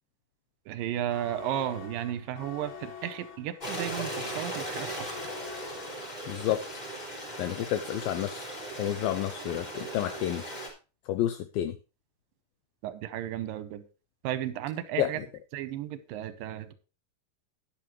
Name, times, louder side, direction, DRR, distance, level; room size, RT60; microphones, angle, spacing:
voice 1, 0.7-5.2 12.8-13.8 14.2-15.2 15.5-16.7, right 11 dB, 75° right, 2.3 m, -34 dB
sound 1, 1.1-6.4, left 7 dB, 60° left, 3.1 m, -46 dB
Stream, 3.6-10.7, right 1 dB, 10° left, 4.1 m, -38 dB
voice 2, 6.3-6.6 7.4-8.5 8.8-10.4 11.1-11.7 15.0-15.1, left 12 dB, 80° left, 2.2 m, -30 dB
12.5 x 10.0 x 3.1 m
omnidirectional pair, 4.7 m